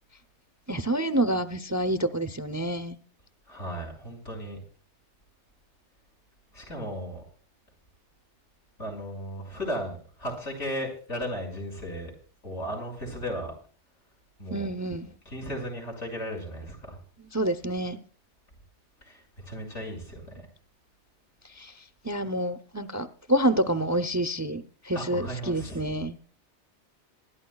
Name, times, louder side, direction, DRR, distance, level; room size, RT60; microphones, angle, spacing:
voice 1, 0.7-3.0 14.5-15.1 17.3-18.0 21.6-21.7 22.0-26.2, right 1 dB, 20° right, 0.5 m, -28 dB
voice 2, 3.5-4.6 6.5-7.2 8.8-12.1 12.4-13.5 14.4-14.7 15.3-17.0 19.0-20.4 24.9-25.8, equal, 85° left, 6.2 m, -35 dB
26.0 x 12.0 x 2.3 m
omnidirectional pair, 1.2 m